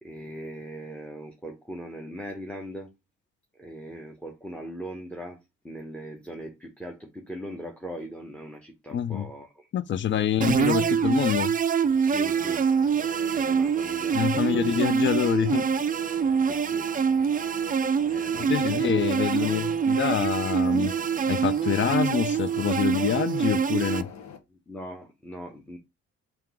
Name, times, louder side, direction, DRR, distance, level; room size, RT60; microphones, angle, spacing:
voice 1, 0.0-2.9 3.6-5.4 5.6-9.7 12.0-12.6 13.0-15.1 15.5-15.6 16.4-16.9 18.0-19.6 24.5-25.8, equal, 5° left, 0.9 m, -40 dB
voice 2, 8.9-9.3 9.7-11.5 14.1-15.7 18.4-20.9 21.3-24.1, left 9 dB, 40° left, 0.5 m, -26 dB
sound 1, 10.4-24.0, right 7 dB, 30° right, 0.4 m, -25 dB
sound 2, 12.4-24.4, left 7 dB, 65° left, 1.2 m, -45 dB
3.7 x 3.0 x 4.7 m
cardioid pair, 90°, 30 cm